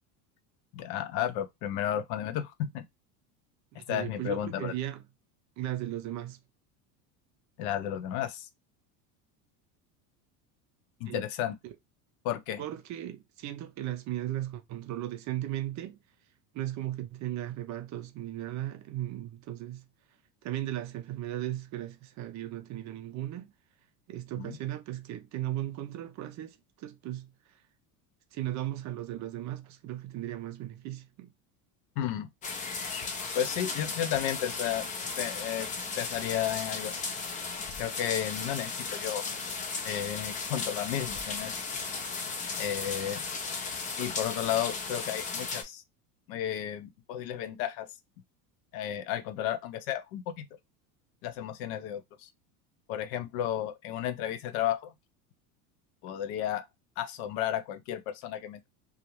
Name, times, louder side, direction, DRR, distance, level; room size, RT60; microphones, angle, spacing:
voice 1, 0.7-2.8 3.9-4.7 7.6-8.5 11.0-11.5 12.2-12.6 24.4-24.6 32.0-32.3 33.3-34.9 35.2-35.7 36.0-36.9 37.8-39.3 39.8-41.6 42.6-43.3 44.0-45.8 46.3-47.9 48.7-50.5 51.2-52.3 52.9-54.9 56.0-56.6 57.0-58.7, left 10 dB, 65° left, 0.6 m, -33 dB
voice 2, 3.7-5.0 5.6-6.4 11.0-11.2 11.6-11.7 12.6-16.0 16.5-19.9 20.4-23.5 24.1-27.3 28.3-31.3, right 13 dB, 40° right, 0.5 m, -36 dB
sound 1, 32.4-45.6, left 4 dB, 20° left, 0.3 m, -36 dB
2.4 x 2.0 x 2.9 m
supercardioid pair, 100°, 45 cm